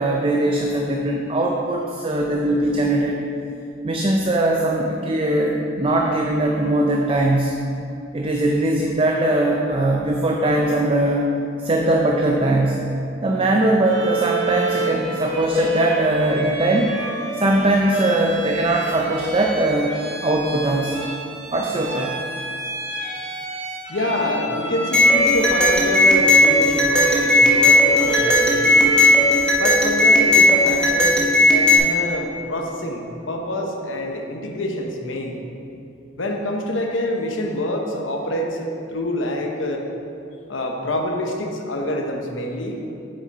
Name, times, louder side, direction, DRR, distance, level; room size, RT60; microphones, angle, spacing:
voice 1, 0.0-3.2 3.8-7.6 8.1-11.2 11.6-12.9 13.2-16.9 17.4-20.0 20.2-21.1 21.5-22.1, right 1 dB, 30° right, 0 dB, 0.5 m, -20 dB
Bowed string instrument, 13.8-29.6, right 2 dB, 80° right, 1.9 m, -30 dB
voice 2, 23.9-28.8 29.6-35.4 36.2-39.9 40.5-42.8, left 1 dB, 80° left, 2 dB, 1.0 m, -26 dB
sound 1, 24.9-31.8, left 1 dB, 5° left, 1.0 m, -16 dB
8.0 x 6.3 x 4.2 m, 2.7 s
head